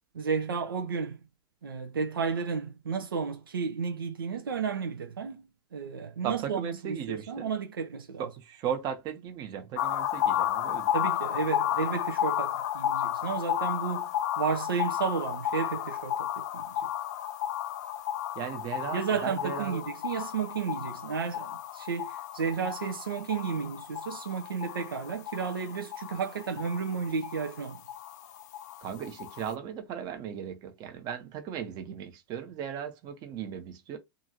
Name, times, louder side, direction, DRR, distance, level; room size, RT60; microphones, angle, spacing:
voice 1, 0.1-1.2 1.6-5.4 5.7-8.2 10.9-14.1 14.4-16.7 18.9-27.8, right 5 dB, 75° right, 0.5 m, -32 dB
voice 2, 6.2-7.5 8.2-10.9 18.4-19.8 28.8-34.0, right 8 dB, 35° right, 0.8 m, -37 dB
sound 1, 9.8-29.5, left 11 dB, 50° left, 0.3 m, -33 dB
2.8 x 2.5 x 2.8 m
figure-of-eight pair, 100°, 12 cm